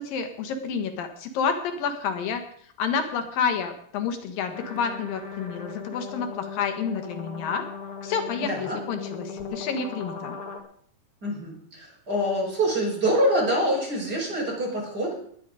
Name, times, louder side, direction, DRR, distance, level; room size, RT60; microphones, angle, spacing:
voice 1, 0.0-2.4 2.8-7.7 8.0-10.4, left 6 dB, 85° left, 6 dB, 3.3 m, -29 dB
sound 1, 4.5-10.6, left 5 dB, 60° left, 3.1 m, -38 dB
voice 2, 8.4-8.8 11.2-15.2, equal, 25° right, -2 dB, 5.7 m, -25 dB
20.0 x 9.7 x 5.0 m, 0.62 s
omnidirectional pair, 3.9 m